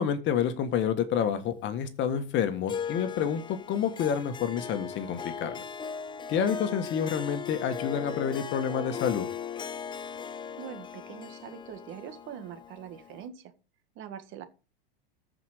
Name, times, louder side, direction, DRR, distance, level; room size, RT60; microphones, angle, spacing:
voice 1, 0.0-5.6 6.3-9.3, left 8 dB, 40° left, 10 dB, 1.6 m, -28 dB
Harp, 2.7-13.3, left 7 dB, 15° left, 0.6 m, -38 dB
voice 2, 10.6-13.5 13.9-14.4, right 9 dB, 45° right, 10 dB, 1.6 m, -43 dB
14.0 x 5.2 x 5.0 m, 0.34 s
supercardioid pair, 120°, 29 cm